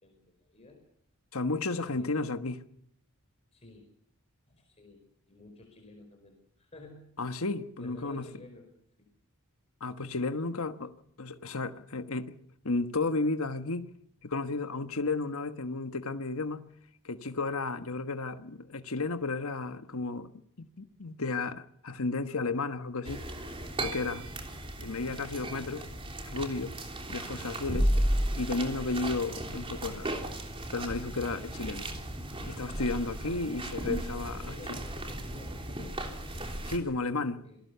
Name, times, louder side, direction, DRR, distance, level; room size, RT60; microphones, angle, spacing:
voice 1, 0.0-0.8 1.8-2.3 3.5-3.9 4.5-7.1 7.8-8.7 9.0-9.1 34.3-36.0 37.3-37.6, left 2 dB, 30° left, 4.8 m, -51 dB
voice 2, 1.3-2.6 7.2-8.2 9.8-12.3 12.6-13.9 14.2-16.7 17.0-20.3 20.6-23.3 23.8-24.2 24.8-25.9 26.3-26.8 27.1-27.9 28.3-30.2 30.7-31.9 32.4-34.5 36.6-37.4, left 3 dB, 70° left, 1.3 m, -33 dB
sound 1, 23.1-36.8, right 1 dB, 25° right, 3.3 m, -34 dB
27.0 x 18.5 x 6.9 m
head